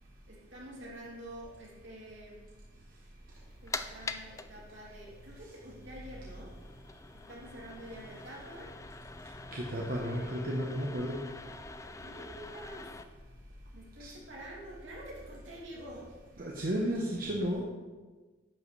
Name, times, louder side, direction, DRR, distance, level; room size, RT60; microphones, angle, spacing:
voice 1, 0.3-2.4 2.7-2.8 3.6-6.5 7.3-8.7 9.7-10.4 12.0-13.0 13.7-16.1, right 1 dB, 65° right, -5 dB, 2.9 m, -47 dB
sound 1, 3.3-13.0, left 3 dB, 15° left, 0.3 m, -45 dB
voice 2, 9.5-11.2 14.0-14.1 16.4-17.6, equal, 50° right, -2 dB, 1.0 m, -33 dB
10.5 x 7.6 x 3.3 m, 1.3 s
head